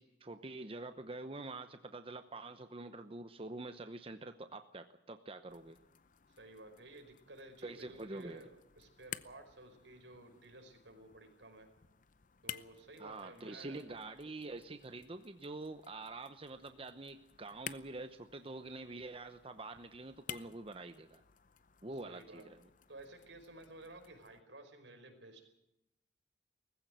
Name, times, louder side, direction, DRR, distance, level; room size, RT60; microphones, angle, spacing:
voice 1, 0.0-5.8 7.6-8.4 13.0-21.2 21.8-22.6, right 2 dB, 30° right, 9 dB, 0.9 m, -46 dB
sound 1, 5.5-24.4, left 9 dB, 45° left, 0.8 m, -54 dB
voice 2, 6.3-11.7 12.4-13.8 21.9-22.4 22.9-25.5, right 2 dB, 80° right, 5 dB, 5.0 m, -54 dB
19.5 x 15.5 x 9.3 m, 0.84 s
head